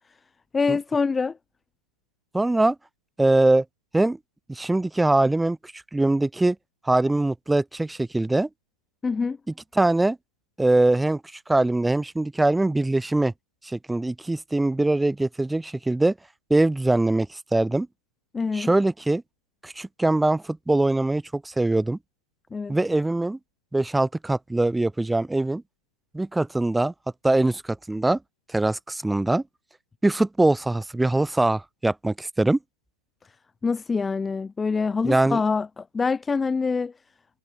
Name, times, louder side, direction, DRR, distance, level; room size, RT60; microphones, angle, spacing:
voice 1, 0.5-1.4 9.0-9.4 18.3-18.7 22.5-22.8 33.6-36.9, left 4 dB, 15° left, 1.5 m, -25 dB
voice 2, 2.3-2.8 3.2-3.6 3.9-4.2 4.5-6.6 6.8-8.5 9.7-10.2 10.6-11.2 11.5-13.3 13.6-16.1 16.5-17.9 18.5-19.2 19.6-22.0 22.7-23.4 23.7-25.6 26.1-26.9 27.2-28.2 28.5-29.4 30.0-32.6 35.0-35.4, right 2 dB, 5° right, 2.4 m, -22 dB
hypercardioid pair, 110°, 0 cm